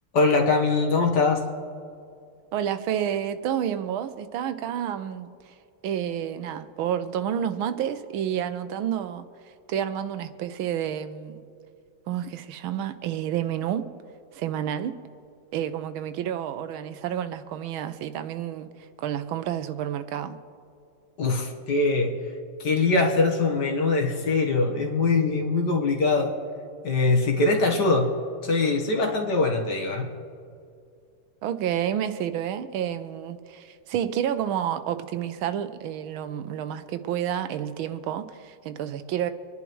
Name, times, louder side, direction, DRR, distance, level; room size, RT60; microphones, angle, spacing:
voice 1, 0.1-1.4 21.2-22.2 22.6-26.3 26.8-28.1 28.4-30.1, left 3 dB, 55° left, 1.8 m, -22 dB
voice 2, 2.5-5.5 5.8-9.3 9.7-11.4 12.1-13.9 14.3-14.9 15.5-20.4 31.4-39.3, right 10 dB, 80° right, 1.4 m, -30 dB
26.5 x 10.5 x 3.1 m
omnidirectional pair, 2.3 m